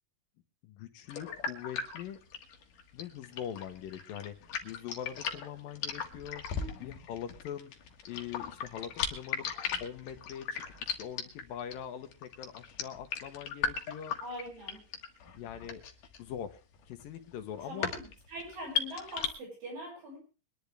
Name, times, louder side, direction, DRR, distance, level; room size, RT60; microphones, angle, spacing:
voice 1, 0.6-2.2 2.9-9.5 9.8-14.1 15.4-15.8 16.2-16.6 16.9-17.9, left 9 dB, 90° left, 6 dB, 3.0 m, -43 dB
sound 1, 1.1-19.3, left 7 dB, 70° left, 3.2 m, -38 dB
voice 2, 6.6-6.9 14.2-14.8 17.6-20.2, equal, 80° right, 0 dB, 8.1 m, -43 dB
23.5 x 10.5 x 3.4 m, 0.35 s
omnidirectional pair, 3.9 m